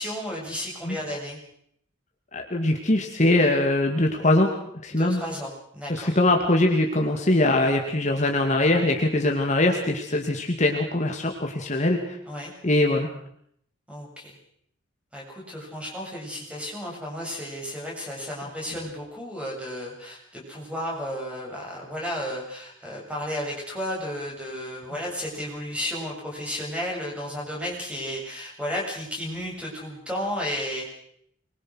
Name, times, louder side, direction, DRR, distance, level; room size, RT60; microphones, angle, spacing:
voice 1, 0.0-1.4 4.9-6.2 12.3-12.5 13.9-14.4 15.1-30.8, equal, 5° right, -2 dB, 7.5 m, -33 dB
voice 2, 2.3-4.5 4.8-5.2 5.9-12.2 12.6-13.1, left 1 dB, 35° left, 2 dB, 2.4 m, -22 dB
25.0 x 22.5 x 6.4 m, 0.69 s
head